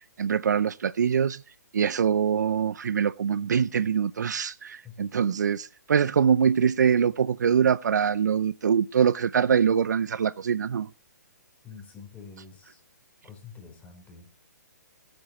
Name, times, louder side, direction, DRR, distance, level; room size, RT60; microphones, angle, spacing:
voice 1, 0.2-1.4 1.7-10.9, right 7 dB, 75° right, 0.5 m, -24 dB
voice 2, 11.6-12.8 13.2-14.5, left 5 dB, 15° left, 4.0 m, -47 dB
22.5 x 8.8 x 3.0 m
hypercardioid pair, 140°, 10 cm